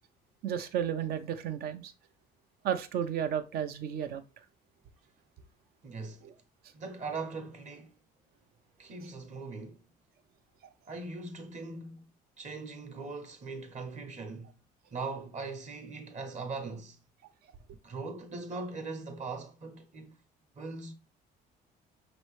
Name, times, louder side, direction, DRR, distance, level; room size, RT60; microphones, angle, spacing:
voice 1, 0.4-1.9 2.6-4.2 6.2-6.3, right 9 dB, 65° right, 0.6 m, -33 dB
voice 2, 5.8-6.2 6.7-8.0 8.8-9.9 10.9-12.1 12.4-14.5 14.9-17.0 17.8-20.2 20.6-20.9, right 3 dB, 45° right, 1.0 m, -40 dB
5.4 x 3.0 x 3.1 m
cardioid pair, 110°, 17 cm